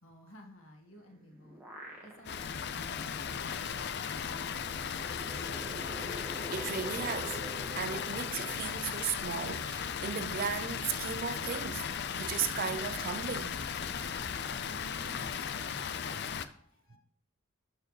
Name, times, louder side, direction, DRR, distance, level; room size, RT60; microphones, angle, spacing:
voice 1, 0.0-1.6 2.0-4.9 14.7-17.0, equal, 80° left, 1.9 m, -56 dB
sound 1, 1.0-2.6 3.0-3.1 4.4-9.2, right 1 dB, 10° right, 1.7 m, -46 dB
Water, 2.2-16.5, left 7 dB, 55° left, 0.5 m, -36 dB
voice 2, 6.5-7.4 7.7-11.8 12.1-13.6 14.2-14.3, right 7 dB, 45° right, 0.5 m, -36 dB
12.0 x 4.6 x 3.3 m
head